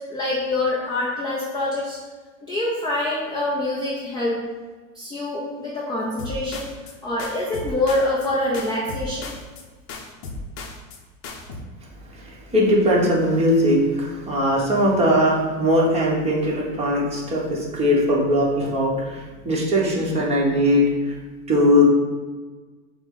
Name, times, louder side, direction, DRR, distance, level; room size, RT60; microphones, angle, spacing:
voice 1, 0.1-2.0 2.4-4.4 4.9-6.7 7.0-9.3, left 1 dB, 10° left, -5 dB, 0.4 m, -25 dB
sound 1, 6.2-6.9 7.2-8.3 8.5-9.6 9.9-11.0 11.2-11.6, left 3 dB, 45° left, 0.8 m, -35 dB
voice 2, 12.1-21.1 21.5-21.8, equal, 15° right, -4 dB, 1.1 m, -20 dB
6.3 x 2.2 x 3.8 m, 1.4 s
supercardioid pair, 135°, 41 cm